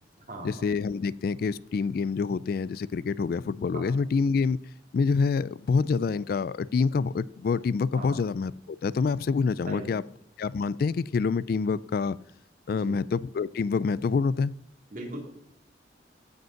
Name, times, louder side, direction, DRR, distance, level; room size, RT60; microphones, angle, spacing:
voice 1, 0.4-4.6 4.9-10.0 10.4-12.2 12.7-14.5, left 5 dB, 55° left, 19 dB, 0.3 m, -27 dB
voice 2, 12.7-13.0 14.9-15.2, right 1 dB, 50° right, 0 dB, 3.0 m, -38 dB
15.5 x 5.3 x 5.7 m, 0.73 s
head